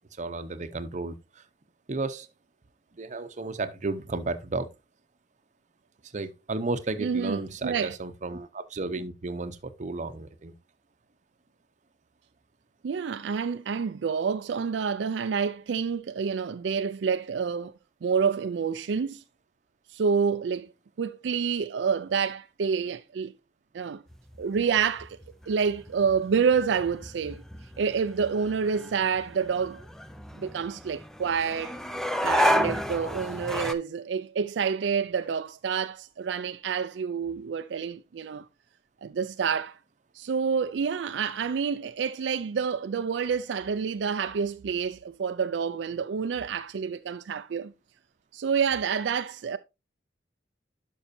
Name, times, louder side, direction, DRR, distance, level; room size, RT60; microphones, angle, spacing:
voice 1, 0.2-1.4 1.9-2.3 2.9-4.7 6.1-10.5, right 3 dB, 45° right, 0.7 m, -33 dB
voice 2, 7.0-8.0 12.8-17.7 18.0-19.2 19.9-20.7 21.0-23.3 23.7-24.0 24.4-25.2 25.5-27.4 27.8-29.8 30.4-31.8 32.2-38.4 39.0-39.7 40.2-47.7 48.3-49.6, right 6 dB, 80° right, 0.4 m, -28 dB
sound 1, 24.1-33.7, equal, 5° left, 0.5 m, -32 dB
11.5 x 5.5 x 2.6 m
head